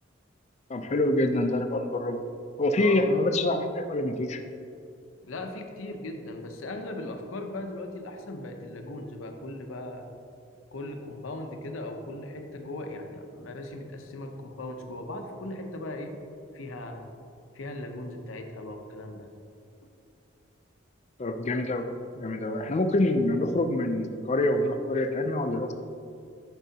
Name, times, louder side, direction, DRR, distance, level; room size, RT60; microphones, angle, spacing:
voice 1, 0.7-2.2 2.6-4.4 21.2-21.9 22.2-25.7, left 1 dB, 35° left, 7 dB, 0.4 m, -26 dB
voice 2, 2.8-3.1 5.2-10.0 10.7-16.1 16.5-17.1 17.5-19.3, left 1 dB, 85° left, 4 dB, 0.7 m, -38 dB
9.2 x 6.1 x 2.8 m, 2.5 s
head